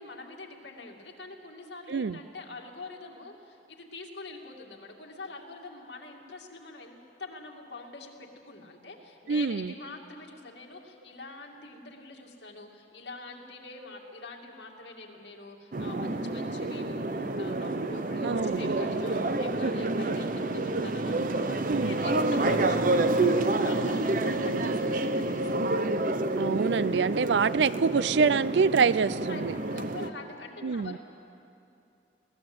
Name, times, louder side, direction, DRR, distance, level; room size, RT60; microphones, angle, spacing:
voice 1, 0.0-25.8 29.3-29.4 29.7-31.0, left 3 dB, 75° left, 1 dB, 2.4 m, -45 dB
voice 2, 9.3-9.7 18.2-18.7 21.7-22.0 26.4-29.5 30.6-31.0, right 5 dB, 80° right, 18 dB, 0.5 m, -25 dB
sound 1, 15.7-30.1, right 2 dB, 50° right, 0.8 m, -28 dB
22.0 x 17.0 x 7.9 m, 2.6 s
head